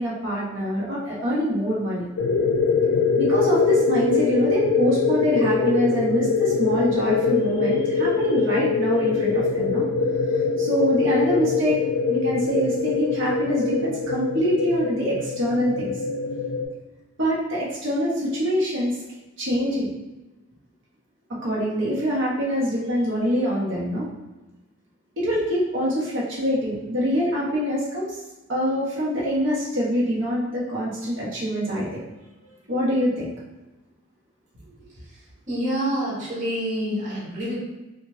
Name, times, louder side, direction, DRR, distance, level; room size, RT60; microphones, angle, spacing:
voice 1, 0.0-2.0 3.2-9.8 10.3-11.8 12.1-15.9 17.2-19.0 19.4-19.9 21.4-24.1 25.2-28.2 28.5-32.0 32.7-33.3, equal, 70° right, -6 dB, 0.9 m, -24 dB
sound 1, 2.2-16.6, left 4 dB, 90° left, 0.4 m, -23 dB
voice 2, 35.5-37.6, equal, 40° right, -7 dB, 1.0 m, -27 dB
2.8 x 2.4 x 3.1 m, 1.1 s
head